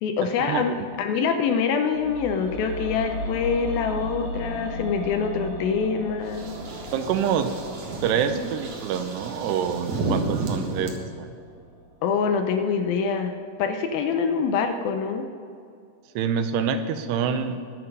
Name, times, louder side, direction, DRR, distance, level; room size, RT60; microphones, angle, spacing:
voice 1, 0.0-6.5 12.0-15.3, left 6 dB, 75° left, 6 dB, 2.3 m, -25 dB
sound 1, 1.9-12.0 12.3-12.4, equal, 45° left, 2.9 m, -37 dB
sound 2, 6.3-10.9, right 3 dB, 55° right, 2.4 m, -32 dB
voice 2, 6.9-7.5 8.0-11.3 16.2-17.6, right 7 dB, 90° right, 9 dB, 2.9 m, -26 dB
22.0 x 7.7 x 5.4 m, 2.4 s
omnidirectional pair, 4.7 m